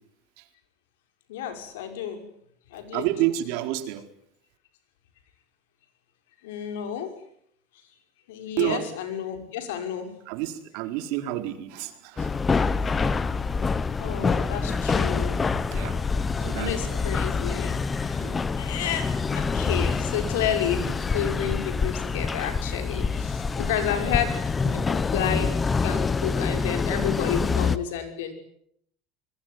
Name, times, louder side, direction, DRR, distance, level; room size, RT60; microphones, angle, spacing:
voice 1, 1.3-2.3 2.7-3.1 6.4-7.1 8.3-10.1 14.0-15.6 16.6-18.3 18.6-24.4 24.6-25.6 25.8-28.3, left 9 dB, 90° left, 6 dB, 5.8 m, -31 dB
voice 2, 2.9-4.1 8.6-8.9 10.3-12.3 15.7-16.0 16.4-17.0 18.2-18.4, right 14 dB, 70° right, 7 dB, 4.2 m, -29 dB
sound 1, 12.2-27.8, left 4 dB, 20° left, 1.2 m, -26 dB
26.0 x 22.0 x 9.5 m, 0.70 s
supercardioid pair, 130°, 0 cm